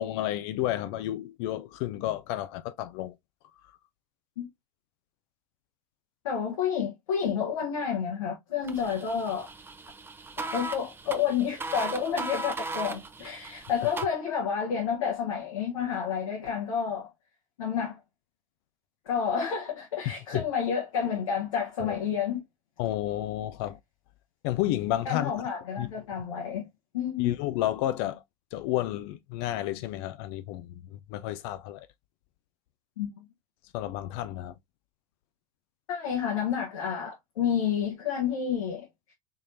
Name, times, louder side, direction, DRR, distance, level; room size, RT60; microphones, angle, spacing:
voice 1, 0.0-3.1 20.1-20.4 21.8-21.9 22.8-23.8 24.4-25.3 25.8-25.9 27.2-28.2 28.5-30.8 31.1-31.9 33.7-34.5, left 14 dB, 50° left, 0.4 m, -31 dB
voice 2, 6.2-9.5 10.5-17.1 17.6-18.0 19.1-22.4 25.0-26.7 26.9-27.3 33.0-33.2 35.9-38.9, left 7 dB, 70° left, 1.1 m, -30 dB
sound 1, 8.6-14.0, right 2 dB, 15° right, 0.6 m, -37 dB
3.5 x 3.2 x 2.5 m
figure-of-eight pair, 85°, 17 cm